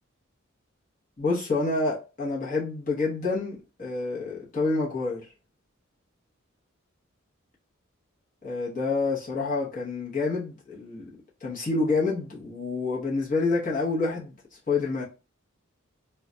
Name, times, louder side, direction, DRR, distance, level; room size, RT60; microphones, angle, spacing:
voice 1, 1.2-5.2 8.4-11.1 11.4-14.4 14.7-15.0, left 3 dB, 40° left, 0.9 m, -28 dB
2.3 x 2.2 x 3.8 m
head